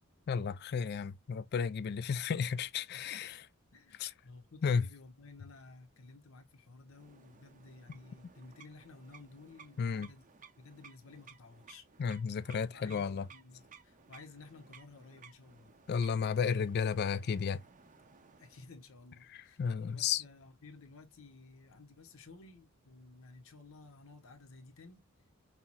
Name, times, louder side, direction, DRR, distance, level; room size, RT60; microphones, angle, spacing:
voice 1, 0.3-3.3 4.0-4.1 4.6-4.8 9.8-10.1 12.0-13.3 15.9-17.6 19.6-20.2, left 6 dB, 50° left, 0.3 m, -32 dB
voice 2, 2.9-3.4 3.7-10.2 10.6-11.9 12.6-15.7 18.4-25.0, left 3 dB, 70° left, 0.9 m, -54 dB
sound 1, 6.9-18.7, right 6 dB, 40° right, 0.6 m, -59 dB
5.6 x 2.0 x 2.9 m
head